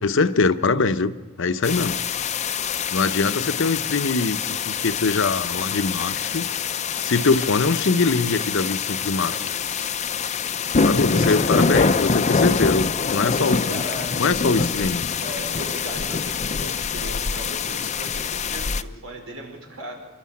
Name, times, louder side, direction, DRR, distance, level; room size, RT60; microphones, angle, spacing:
voice 1, 0.0-1.1 1.4-2.0 2.9-6.5 7.0-9.4 10.8-13.8 14.2-15.0, left 4 dB, 65° left, 11 dB, 0.8 m, -22 dB
sound 1, 1.6-18.8, left 5 dB, 35° left, 0.6 m, -25 dB
voice 2, 9.2-9.7 10.9-11.9 12.3-12.6 13.3-14.9 15.2-20.0, equal, 80° right, 1 dB, 5.1 m, -37 dB
27.0 x 12.0 x 8.5 m, 1.2 s
head